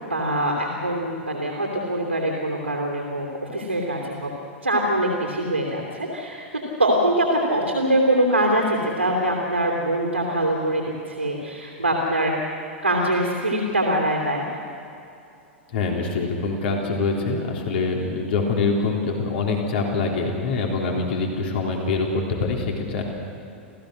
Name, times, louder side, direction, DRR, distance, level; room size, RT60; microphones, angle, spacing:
voice 1, 0.1-3.3 3.5-4.3 4.6-6.5 6.8-12.3 12.8-14.6, right 1 dB, 90° right, 0 dB, 3.1 m, -23 dB
voice 2, 15.7-23.0, left 3 dB, 55° left, 0 dB, 3.5 m, -24 dB
29.0 x 15.5 x 6.4 m, 2.7 s
figure-of-eight pair, 100°, 7 cm